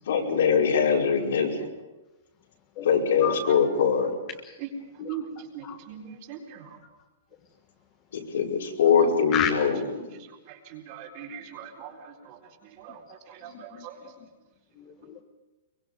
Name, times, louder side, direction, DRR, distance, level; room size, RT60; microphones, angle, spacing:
voice 1, 0.1-1.6 2.8-4.1 8.1-10.1, left 6 dB, 80° left, -2 dB, 5.6 m, -23 dB
voice 2, 5.5-6.6 10.5-12.4 12.8-13.0 13.3-13.9, right 10 dB, 40° right, -1 dB, 4.3 m, -40 dB
voice 3, 13.5-13.9 14.8-15.2, left 11 dB, 30° left, 3 dB, 1.6 m, -31 dB
24.0 x 23.5 x 5.4 m, 1.1 s
hypercardioid pair, 165°, 0 cm